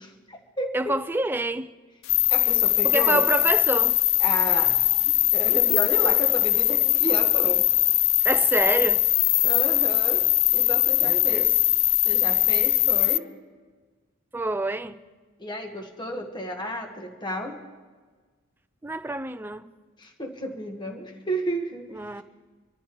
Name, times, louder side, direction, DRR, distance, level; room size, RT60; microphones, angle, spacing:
voice 1, 0.0-0.9 2.3-3.2 4.2-7.7 9.4-10.2 10.5-11.6 12.0-13.2 15.4-17.6 20.0-22.2, equal, 20° left, 1.3 m, -32 dB
voice 2, 0.7-1.7 2.8-4.0 8.2-9.0 11.0-11.5 14.3-15.0 18.8-19.6 22.0-22.2, right 2 dB, 10° right, 0.4 m, -27 dB
sound 1, 2.1-13.2, left 15 dB, 70° left, 0.4 m, -21 dB
25.0 x 14.0 x 3.1 m
head